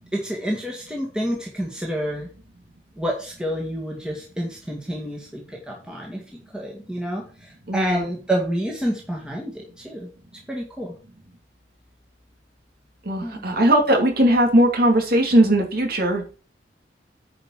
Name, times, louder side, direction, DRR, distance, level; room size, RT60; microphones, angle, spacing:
voice 1, 0.1-2.3 3.0-6.2 6.5-10.1 10.5-10.9 13.2-13.6, equal, 5° right, -1 dB, 1.9 m, -29 dB
voice 2, 7.7-8.0 13.0-16.2, right 1 dB, 60° right, 2 dB, 2.8 m, -19 dB
9.6 x 5.2 x 5.6 m, 0.38 s
head